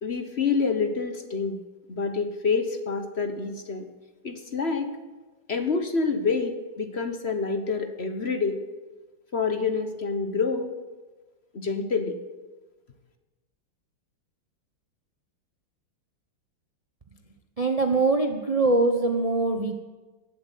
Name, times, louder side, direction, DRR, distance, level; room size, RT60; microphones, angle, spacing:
voice 1, 0.0-1.6 1.9-3.9 4.2-4.9 5.5-8.6 9.3-10.7 11.5-12.2, left 4 dB, 40° left, 7 dB, 1.2 m, -27 dB
voice 2, 17.6-19.8, right 3 dB, 65° right, 5 dB, 0.3 m, -23 dB
18.0 x 8.1 x 8.3 m, 1.3 s
omnidirectional pair, 2.3 m